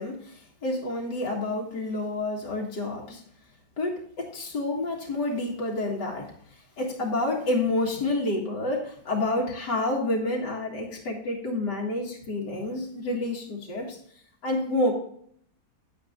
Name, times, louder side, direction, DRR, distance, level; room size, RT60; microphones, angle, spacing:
voice 1, 0.0-3.2 3.8-6.3 6.8-14.0 14.4-14.9, left 2 dB, 85° left, -2 dB, 2.4 m, -29 dB
9.9 x 9.2 x 2.5 m, 0.63 s
omnidirectional pair, 1.8 m